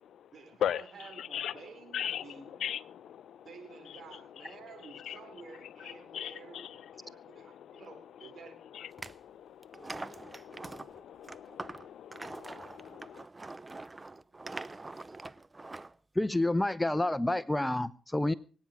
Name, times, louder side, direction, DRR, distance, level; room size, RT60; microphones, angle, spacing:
voice 1, 0.3-2.7 3.4-8.5, right 5 dB, 55° right, 4.8 m, -51 dB
voice 2, 1.2-1.5 1.9-2.2 2.6-3.4 5.1-5.2 6.1-6.8 7.0-7.8 8.7-13.2, left 10 dB, 75° left, 0.6 m, -39 dB
sound 1, 8.9-9.1 9.6-16.0, right 2 dB, 25° right, 0.7 m, -44 dB
voice 3, 16.2-18.3, left 1 dB, 10° left, 0.7 m, -29 dB
24.0 x 9.4 x 4.7 m
supercardioid pair, 50°, 0 cm